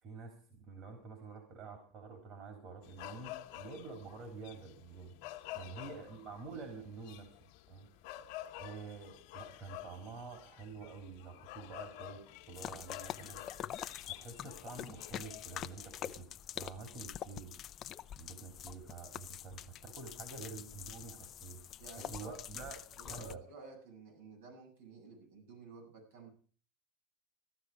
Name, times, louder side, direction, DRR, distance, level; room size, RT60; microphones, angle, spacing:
voice 1, 0.0-5.1 5.5-7.4 7.7-7.9 8.6-12.2 12.5-13.4 14.0-17.5 18.1-21.6 22.0-23.4, right 4 dB, 50° right, 3 dB, 3.9 m, -48 dB
sound 1, 2.8-16.0, left 14 dB, 70° left, 1.3 m, -50 dB
sound 2, 12.5-23.4, left 10 dB, 40° left, 0.6 m, -46 dB
voice 2, 21.8-22.4 23.0-26.3, right 4 dB, 90° right, 1 dB, 7.8 m, -52 dB
15.5 x 12.0 x 5.0 m, 0.44 s
supercardioid pair, 125°, 0 cm